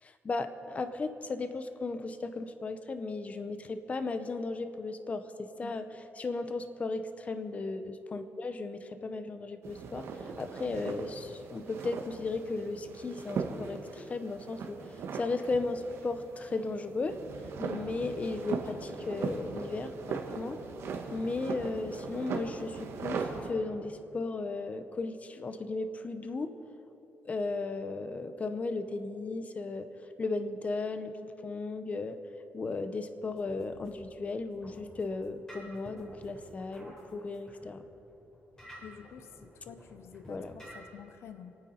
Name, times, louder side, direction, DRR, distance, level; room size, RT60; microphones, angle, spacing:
voice 1, 0.0-5.9 6.2-14.9 15.1-17.2 17.6-20.6 21.1-26.6 27.2-29.9 30.2-32.2 32.5-37.8 40.3-40.5, left 3 dB, 30° left, 9 dB, 0.8 m, -35 dB
sound 1, 9.6-23.5, right 5 dB, 75° right, 1.6 m, -39 dB
sound 2, 33.3-40.8, equal, 15° left, 4.2 m, -52 dB
voice 2, 38.8-41.6, left 8 dB, 75° left, 10 dB, 0.8 m, -49 dB
28.0 x 9.4 x 4.4 m, 3.0 s
cardioid pair, 120°, 4 cm